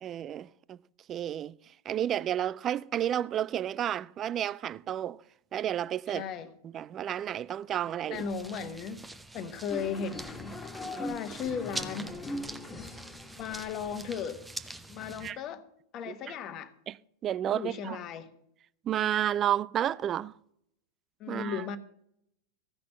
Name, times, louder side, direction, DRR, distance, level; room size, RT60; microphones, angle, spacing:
voice 1, 0.0-0.8 1.1-5.2 5.5-6.2 6.6-8.3 10.8-11.2 15.2-15.4 16.1-16.4 16.9-17.0 17.2-18.0 18.8-20.4 21.3-21.7, right 10 dB, 30° right, 0.4 m, -31 dB
voice 2, 6.1-6.5 8.1-9.0 9.3-10.6 11.0-12.2 13.4-14.5 14.9-15.6 15.9-16.7 17.5-18.3 21.2-21.8, left 6 dB, 35° left, 1.2 m, -36 dB
sound 1, 8.1-15.3, right 2 dB, 10° right, 0.8 m, -45 dB
sound 2, 9.7-14.2, left 2 dB, 10° left, 1.9 m, -41 dB
15.0 x 6.1 x 7.4 m
figure-of-eight pair, 90°, 0 cm